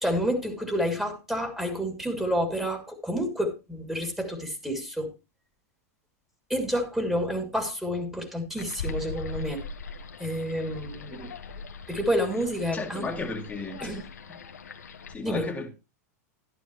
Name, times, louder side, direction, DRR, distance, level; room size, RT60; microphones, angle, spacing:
voice 1, 0.0-5.1 6.5-9.6 10.2-11.3 11.9-13.0 13.8-14.0 15.2-15.5, equal, 5° right, 2.8 m, -29 dB
sound 1, 8.6-15.1, left 4 dB, 90° left, 1.3 m, -40 dB
voice 2, 12.7-13.9 14.3-14.4 15.1-15.7, left 3 dB, 15° left, 2.0 m, -34 dB
11.5 x 11.0 x 3.1 m
hypercardioid pair, 105°, 9 cm